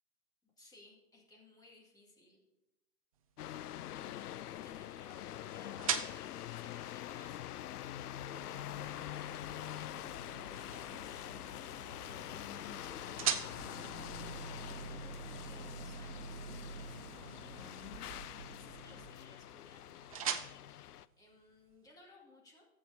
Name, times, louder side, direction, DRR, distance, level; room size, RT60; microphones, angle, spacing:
voice 1, 0.4-2.4 4.6-11.3 12.0-22.7, left 2 dB, 10° left, -2 dB, 2.1 m, -62 dB
sound 1, 3.1-22.0, right 7 dB, 25° right, 0.4 m, -45 dB
sound 2, 3.4-21.1, left 12 dB, 70° left, 0.5 m, -45 dB
Boat Water vehicle, 8.3-19.1, right 4 dB, 60° right, 1.4 m, -50 dB
16.0 x 7.8 x 2.8 m, 0.96 s
hypercardioid pair, 140°, 47 cm